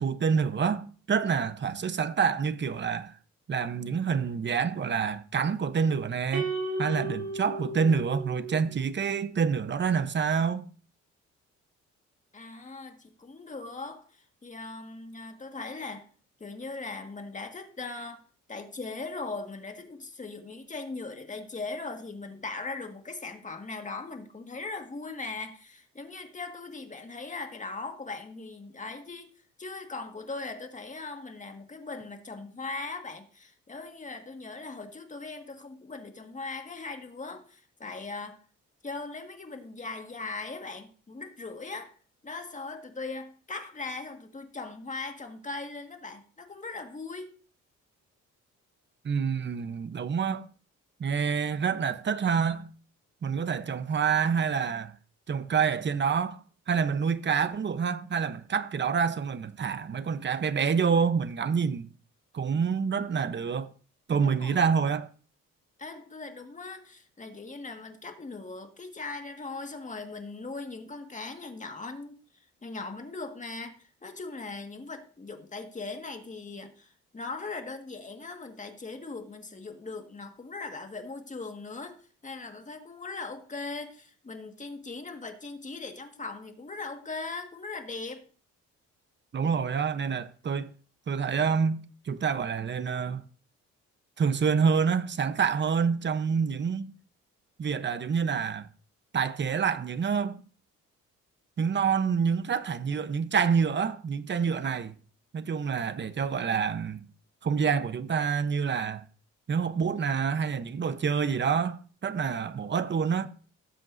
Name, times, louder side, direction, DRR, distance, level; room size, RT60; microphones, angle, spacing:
voice 1, 0.0-3.1 3.5-6.5 6.8-10.6 49.0-50.5 51.0-52.7 53.2-54.9 55.3-56.4 56.7-61.9 62.3-63.7 64.1-65.1 89.3-90.7 91.1-93.3 94.2-96.9 97.6-98.7 99.1-100.4 101.6-105.0 105.3-107.0 107.4-109.0 109.5-113.3, right 6 dB, 35° right, 0.9 m, -27 dB
sound 1, 6.3-8.8, right 2 dB, 65° right, 2.6 m, -34 dB
voice 2, 12.3-16.1 16.4-18.2 18.5-29.3 29.6-38.4 38.8-41.9 42.2-47.4 64.2-64.7 65.8-72.2 72.6-88.3, left 3 dB, 25° left, 1.9 m, -39 dB
18.0 x 7.6 x 2.7 m
cardioid pair, 90°, 30 cm